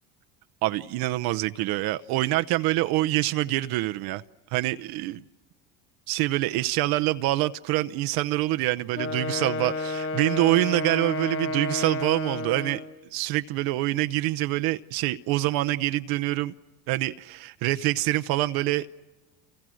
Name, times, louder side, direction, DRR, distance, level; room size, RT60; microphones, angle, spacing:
voice 1, 0.6-4.2 4.5-5.2 6.1-12.8 13.1-16.5 16.9-19.0, right 17 dB, 65° right, 10 dB, 0.8 m, -26 dB
Wind instrument woodwind instrument, 8.9-13.0, left 2 dB, 60° left, 2.2 m, -31 dB
29.5 x 28.5 x 6.4 m, 1.1 s
supercardioid pair, 115°, 39 cm